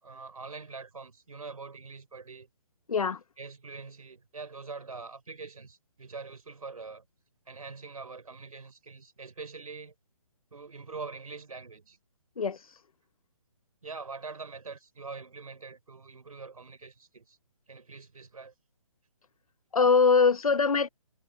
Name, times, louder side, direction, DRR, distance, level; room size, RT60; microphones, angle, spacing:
voice 1, 0.0-2.5 3.4-7.0 7.5-9.9 10.5-12.0 13.8-17.4 17.7-18.5, right 4 dB, 85° right, 4.2 m, -44 dB
voice 2, 2.9-3.2 12.4-12.6 19.7-20.9, left 5 dB, 85° left, 1.2 m, -22 dB
hypercardioid pair, 155°, 18 cm